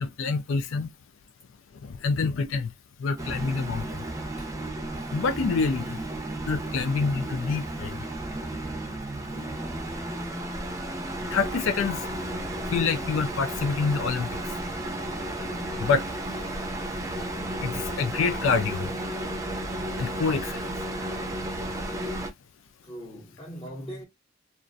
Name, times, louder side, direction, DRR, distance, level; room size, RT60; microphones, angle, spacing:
voice 1, 0.0-0.9 1.9-2.7 3.0-3.8 5.1-6.0 6.5-7.9 9.4-9.5 11.3-12.2 12.7-14.3 15.8-16.0 16.3-16.4 17.6-18.9 20.0-20.5, left 4 dB, 85° left, 0.4 m, -26 dB
sound 1, 3.2-22.3, right 1 dB, 15° right, 0.4 m, -33 dB
voice 2, 22.8-24.1, equal, 25° left, 0.7 m, -40 dB
2.4 x 2.1 x 2.5 m
head